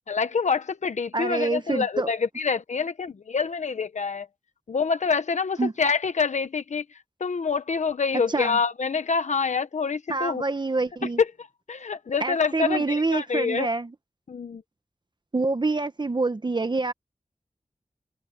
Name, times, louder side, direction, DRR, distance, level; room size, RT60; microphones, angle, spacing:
voice 1, 0.0-4.3 4.7-10.4 11.2-11.3 11.7-13.7 14.3-14.6, left 5 dB, 80° left, 1.0 m, -26 dB
voice 2, 1.1-2.1 5.6-5.7 8.3-8.6 10.1-11.2 12.2-13.9 15.3-16.9, right 3 dB, 40° right, 1.1 m, -26 dB
wide cardioid pair, 65°, 12 cm